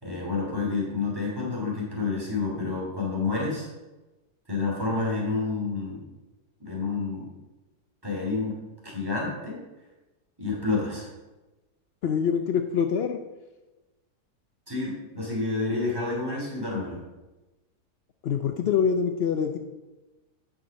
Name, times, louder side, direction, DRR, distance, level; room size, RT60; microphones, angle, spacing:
voice 1, 0.0-3.7 4.5-6.0 6.6-7.3 8.0-8.6 8.8-9.6 10.4-11.1 14.7-17.0, left 3 dB, 15° right, -4 dB, 2.8 m, -29 dB
voice 2, 12.0-13.2 18.2-19.6, left 7 dB, 85° left, 6 dB, 0.5 m, -25 dB
9.3 x 5.9 x 5.2 m, 1.1 s
omnidirectional pair, 1.7 m